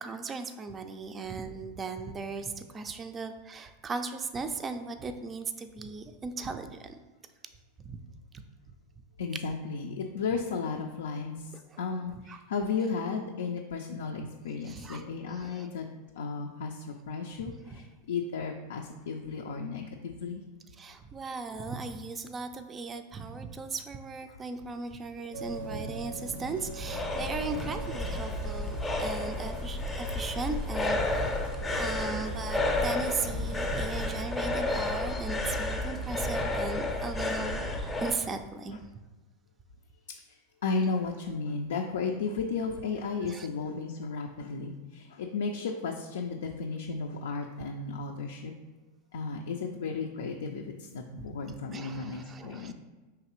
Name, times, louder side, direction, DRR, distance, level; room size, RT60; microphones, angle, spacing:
voice 1, 0.0-7.0 7.8-8.0 8.3-8.4 11.7-11.8 12.3-12.4 14.7-15.0 15.3-15.7 20.8-38.8 43.2-43.5 51.2-51.3 51.7-52.7, right 4 dB, 25° right, 7 dB, 0.3 m, -37 dB
voice 2, 9.2-15.8 16.2-20.4 24.3-24.4 31.5-31.6 40.1-48.5 49.1-52.7, left 4 dB, 80° left, 1 dB, 0.4 m, -34 dB
sound 1, 25.3-34.2, right 2 dB, 80° right, 0.6 m, -42 dB
sound 2, 26.3-38.2, left 2 dB, 10° left, 0.6 m, -31 dB
4.7 x 3.2 x 3.0 m, 1.2 s
hypercardioid pair, 105°, 0 cm